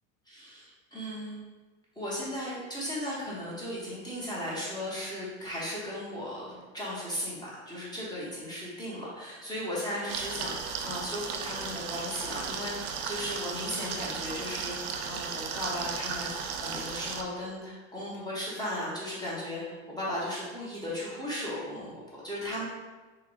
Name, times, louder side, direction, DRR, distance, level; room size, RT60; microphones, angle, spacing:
voice 1, 0.3-1.4 2.0-22.6, equal, 10° left, -8 dB, 0.8 m, -36 dB
sound 1, 10.1-17.2, right 6 dB, 40° right, 0.4 m, -35 dB
3.8 x 2.8 x 3.1 m, 1.3 s
supercardioid pair, 120°, 41 cm